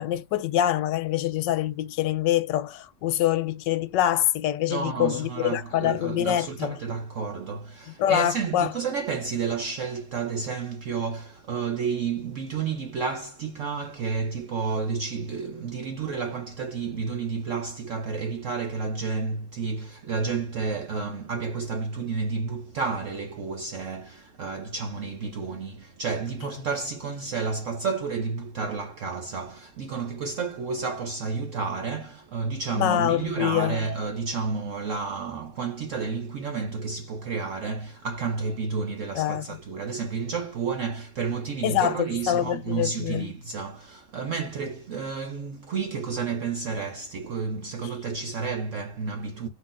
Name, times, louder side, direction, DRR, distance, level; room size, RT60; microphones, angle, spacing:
voice 1, 0.0-6.8 8.0-8.7 32.8-33.8 39.2-39.6 41.6-43.3, left 12 dB, 80° left, 1.2 m, -25 dB
voice 2, 4.7-49.5, right 5 dB, 65° right, 0.7 m, -31 dB
5.6 x 3.1 x 2.4 m
omnidirectional pair, 2.0 m